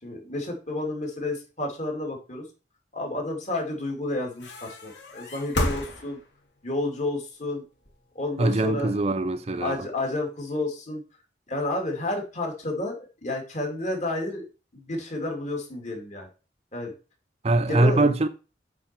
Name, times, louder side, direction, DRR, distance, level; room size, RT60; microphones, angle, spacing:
voice 1, 0.0-2.4 2.9-6.2 6.6-7.6 8.1-8.9 9.6-11.0 11.5-14.4 14.7-16.3 16.7-16.9 17.7-18.1, left 2 dB, 40° left, 2.8 m, -30 dB
sound 1, 4.4-6.6 7.8-9.2, left 1 dB, 80° left, 3.0 m, -32 dB
voice 2, 8.4-9.9 17.4-18.3, right 2 dB, 35° right, 0.6 m, -22 dB
8.9 x 4.3 x 6.1 m
head